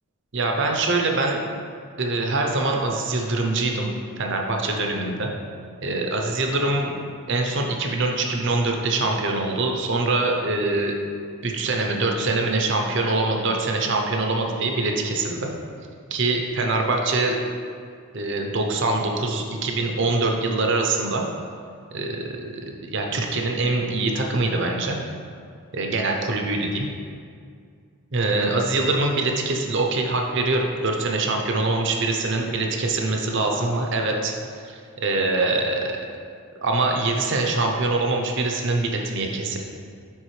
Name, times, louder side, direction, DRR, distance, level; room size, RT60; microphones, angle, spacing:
voice 1, 0.3-1.4 2.0-3.9 4.2-5.3 5.8-6.9 7.3-10.9 11.4-15.5 16.1-17.4 18.1-21.2 21.9-25.0 25.7-26.9 28.1-34.3 34.6-36.0 36.6-39.6, right 2 dB, 55° right, 2 dB, 0.7 m, -24 dB
9.0 x 3.7 x 3.2 m, 2.3 s
head